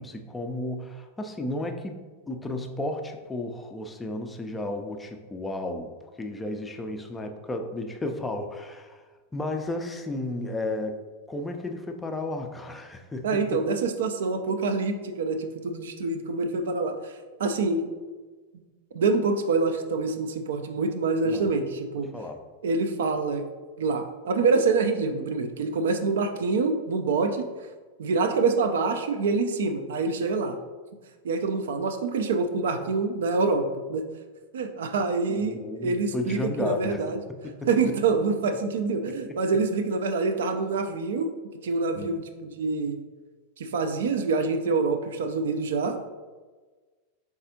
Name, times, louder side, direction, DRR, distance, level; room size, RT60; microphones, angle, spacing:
voice 1, 0.0-2.0 2.3-5.9 6.2-9.0 9.3-11.0 11.3-13.6 21.2-21.5 22.1-22.4 35.3-37.0 37.3-37.7 41.9-42.2, left 2 dB, 10° left, 4 dB, 0.4 m, -33 dB
voice 2, 13.2-17.1 17.4-17.9 18.9-22.1 22.6-23.4 23.8-27.5 28.0-30.6 31.2-34.1 34.5-37.2 37.7-41.3 41.6-43.0 43.6-46.0, right 4 dB, 60° right, 7 dB, 0.3 m, -26 dB
3.9 x 3.5 x 2.7 m, 1.4 s
figure-of-eight pair, 90°, 0 cm